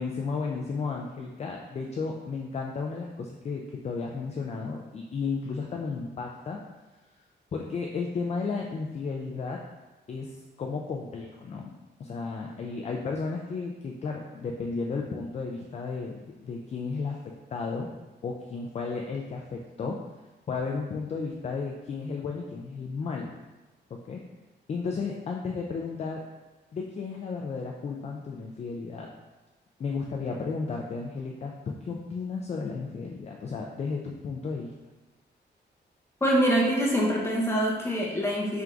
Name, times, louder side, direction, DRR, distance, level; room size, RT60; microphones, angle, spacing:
voice 1, 0.0-6.6 7.5-9.6 10.1-11.7 12.0-17.2 17.5-17.9 18.2-20.0 20.5-23.3 23.9-24.2 24.7-26.2 26.7-29.1 29.8-34.7, left 4 dB, 35° left, 1 dB, 0.4 m, -33 dB
voice 2, 36.2-38.6, equal, 15° left, -4 dB, 0.9 m, -25 dB
4.5 x 3.5 x 2.5 m, 1.1 s
wide cardioid pair, 120°, 18 cm